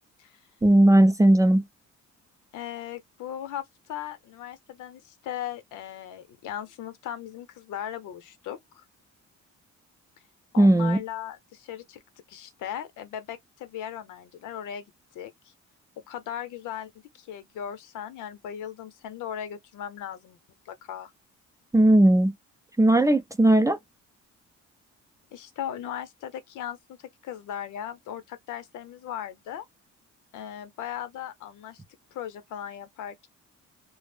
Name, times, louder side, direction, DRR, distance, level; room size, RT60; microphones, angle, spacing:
voice 1, 0.6-1.6 10.6-11.0 21.7-22.3 22.8-23.8, right 1 dB, 10° right, 0.4 m, -17 dB
voice 2, 2.5-8.8 10.5-12.0 12.3-14.8 15.1-15.5 16.1-16.9 17.2-20.4 20.7-21.1 25.3-29.7 30.3-31.8 32.1-33.3, left 10 dB, 80° left, 0.7 m, -38 dB
2.4 x 2.0 x 3.3 m
cardioid pair, 90°, 30 cm